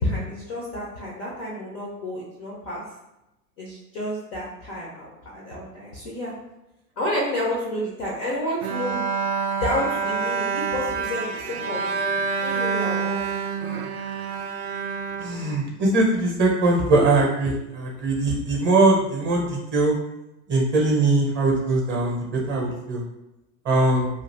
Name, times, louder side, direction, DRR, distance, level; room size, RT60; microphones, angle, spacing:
voice 1, 0.0-2.8 3.6-6.3 7.0-9.1 9.6-11.9 12.4-13.3 18.2-18.3, left 1 dB, 25° left, -4 dB, 0.4 m, -30 dB
Bowed string instrument, 8.6-16.0, right 5 dB, 65° right, 0.5 m, -27 dB
voice 2, 15.2-19.9 20.5-23.0 23.6-24.1, right 2 dB, 25° right, -2 dB, 0.7 m, -21 dB
2.5 x 2.4 x 3.2 m, 0.93 s
figure-of-eight pair, 95°, 48 cm